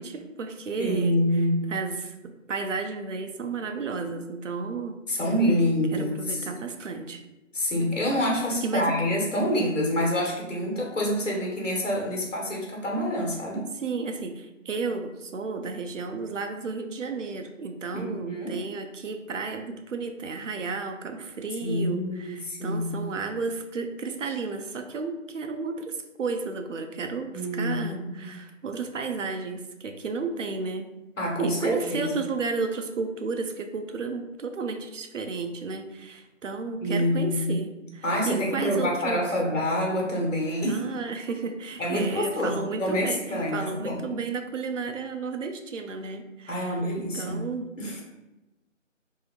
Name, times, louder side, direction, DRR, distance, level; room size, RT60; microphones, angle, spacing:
voice 1, 0.0-1.4 1.7-5.2 5.9-7.2 8.6-9.0 13.7-30.9 31.4-39.4 40.6-43.2 43.5-47.7, right 4 dB, 70° right, 6 dB, 0.5 m, -33 dB
voice 2, 0.8-1.6 5.1-6.5 7.5-13.7 17.9-18.6 21.6-23.1 27.3-28.4 31.2-32.1 36.8-37.6 38.0-40.8 41.8-44.0 46.5-47.5 47.8-48.0, equal, 70° left, -2 dB, 1.2 m, -27 dB
2.7 x 2.5 x 2.9 m, 1.0 s
figure-of-eight pair, 175°, 39 cm